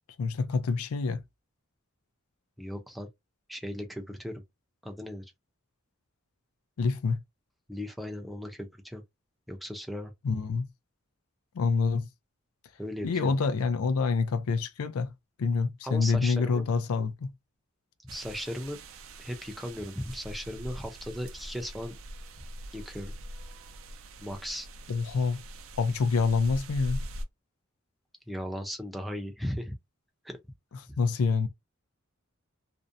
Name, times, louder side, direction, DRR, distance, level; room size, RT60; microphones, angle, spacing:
voice 1, 0.2-1.2 6.8-7.2 10.2-10.7 11.5-12.1 13.0-15.1 15.4-17.3 24.9-25.4 25.8-27.0 31.0-31.5, left 4 dB, 90° left, 0.4 m, -27 dB
voice 2, 2.6-3.1 3.5-4.4 4.8-5.2 7.7-9.0 9.5-10.1 12.8-13.3 15.8-16.7 18.0-18.8 19.2-22.0 22.7-23.1 24.2-24.7 28.3-29.7 30.2-30.4 30.9-31.0, equal, ahead, 0.4 m, -37 dB
sound 1, 18.1-27.2, right 1 dB, 70° right, 0.4 m, -42 dB
2.6 x 2.1 x 2.6 m
head